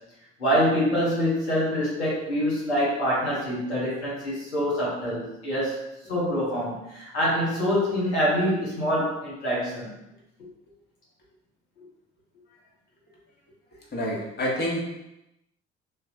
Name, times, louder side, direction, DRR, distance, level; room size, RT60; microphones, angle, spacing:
voice 1, 0.4-5.8 6.1-9.9, equal, 85° left, -7 dB, 1.0 m, -25 dB
voice 2, 13.9-14.8, equal, 30° left, -4 dB, 1.2 m, -27 dB
3.5 x 2.7 x 2.6 m, 0.88 s
figure-of-eight pair, 55°, 32 cm